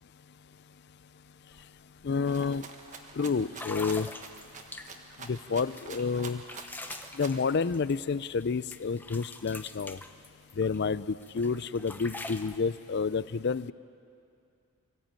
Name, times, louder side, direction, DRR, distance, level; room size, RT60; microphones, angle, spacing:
sound 1, 1.5-1.6 2.0-2.3 2.9-3.0 3.5-5.2 5.7-8.4 8.7-10.8 11.2-12.6, left 2 dB, 10° left, 0.7 m, -44 dB
voice 1, 2.0-2.6 3.2-4.1 5.2-6.4 7.1-10.0 10.6-13.7, left 5 dB, 50° left, 17 dB, 0.4 m, -29 dB
Rattle (instrument), 2.3-7.5, right 4 dB, 35° right, 1.4 m, -46 dB
24.0 x 14.5 x 9.0 m, 2.5 s
head